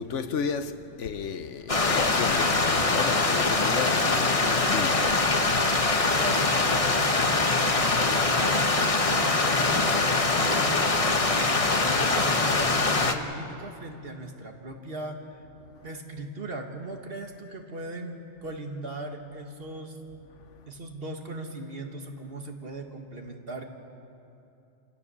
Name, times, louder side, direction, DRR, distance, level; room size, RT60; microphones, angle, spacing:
voice 1, 0.0-5.8, left 6 dB, 85° left, 1.3 m, -33 dB
Stream, 1.7-13.1, left 3 dB, 30° left, 1.1 m, -23 dB
voice 2, 6.1-7.5 7.7-11.5 12.0-15.4 15.8-20.0 20.7-23.6, right 2 dB, 55° right, 2.0 m, -38 dB
28.5 x 16.0 x 7.0 m
omnidirectional pair, 1.2 m